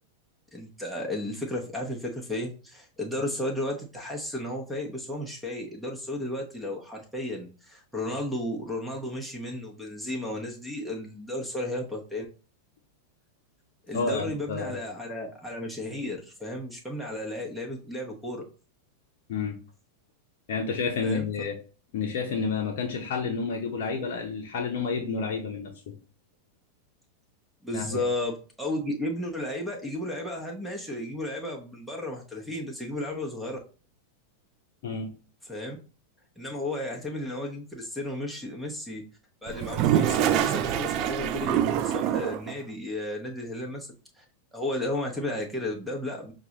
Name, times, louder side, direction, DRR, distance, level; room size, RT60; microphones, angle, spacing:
voice 1, 0.5-12.3 13.9-18.4 21.0-21.3 27.6-33.6 35.5-35.8 36.4-39.0 39.4-43.9 44.2-44.3 44.5-46.3, left 1 dB, ahead, -1 dB, 1.0 m, -33 dB
voice 2, 13.9-14.7 19.3-19.6 20.5-21.5 21.9-25.9 27.7-28.1 34.8-35.1, left 5 dB, 50° left, 0 dB, 0.7 m, -30 dB
Toilet flush, 39.5-42.5, right 10 dB, 40° right, 0.4 m, -25 dB
5.9 x 2.4 x 3.0 m, 0.35 s
figure-of-eight pair, 90°, 0 cm